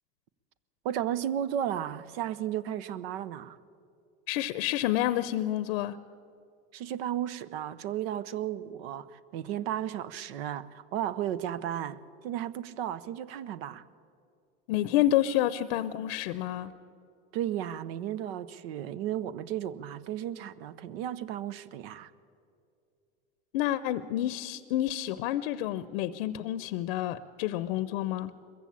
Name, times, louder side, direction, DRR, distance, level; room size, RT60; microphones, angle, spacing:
voice 1, 0.8-3.6 6.7-13.8 17.3-22.1, right 10 dB, 85° right, 0.8 m, -34 dB
voice 2, 4.3-6.0 14.7-16.7 23.5-28.3, left 13 dB, 80° left, 0.7 m, -29 dB
21.5 x 15.0 x 8.6 m
supercardioid pair, 125°, 29 cm